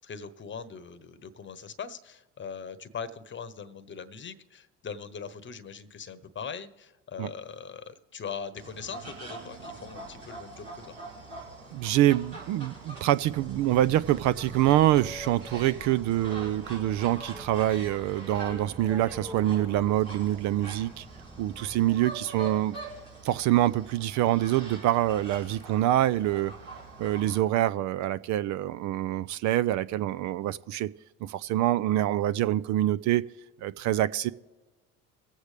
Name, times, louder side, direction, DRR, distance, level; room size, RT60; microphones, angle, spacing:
voice 1, 0.0-10.9, left 6 dB, 30° left, 14 dB, 1.0 m, -41 dB
sound 1, 8.5-27.4, right 3 dB, 80° right, 4.8 m, -44 dB
voice 2, 11.7-21.1 21.4-22.8 23.2-26.5 27.0-30.9 31.2-33.2 33.6-34.3, right 13 dB, 50° right, 17 dB, 0.5 m, -25 dB
Boat Water vehicle, 13.2-22.0, right 1 dB, 5° right, 0.5 m, -46 dB
23.5 x 8.0 x 3.4 m, 1.2 s
hypercardioid pair, 70°, 36 cm